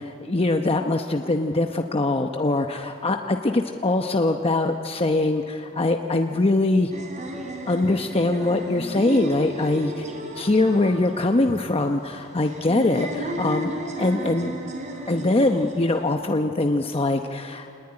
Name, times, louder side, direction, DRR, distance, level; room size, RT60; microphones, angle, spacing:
voice 1, 0.0-6.9 7.7-9.9 10.4-14.5 15.1-17.8, left 2 dB, 25° left, 4 dB, 0.9 m, -23 dB
sound 1, 6.9-16.0, right 1 dB, 35° right, 3.6 m, -35 dB
27.0 x 19.5 x 10.0 m, 2.6 s
head